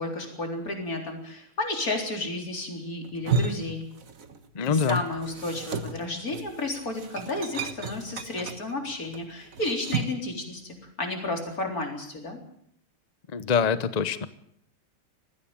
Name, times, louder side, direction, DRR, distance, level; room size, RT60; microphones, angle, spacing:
voice 1, 0.0-3.9 4.7-12.4, left 2 dB, 40° left, 2 dB, 4.3 m, -32 dB
sound 1, 3.0-4.5 4.7-10.3, right 4 dB, 45° right, 1.5 m, -33 dB
voice 2, 4.5-5.0 13.3-14.3, left 6 dB, 75° left, 13 dB, 0.3 m, -24 dB
20.0 x 15.5 x 8.8 m, 0.68 s
omnidirectional pair, 2.3 m